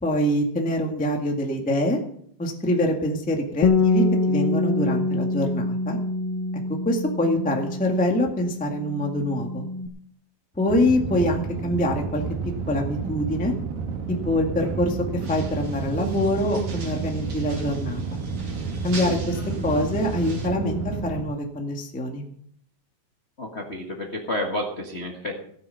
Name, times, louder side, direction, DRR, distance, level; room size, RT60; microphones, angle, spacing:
voice 1, 0.0-2.0 2.4-6.0 6.8-9.7 10.6-12.2 12.7-13.5 14.1-18.2 18.8-22.2, left 1 dB, 10° left, 2 dB, 0.5 m, -25 dB
Bass guitar, 3.6-9.9, left 3 dB, 85° left, 2.8 m, -25 dB
sound 1, 10.7-21.2, right 4 dB, 80° right, 3.1 m, -31 dB
sound 2, 15.2-20.5, right 3 dB, 40° right, 3.0 m, -39 dB
voice 2, 23.4-25.4, left 1 dB, 60° left, 0 dB, 0.7 m, -30 dB
16.5 x 9.4 x 5.7 m, 0.67 s
omnidirectional pair, 4.1 m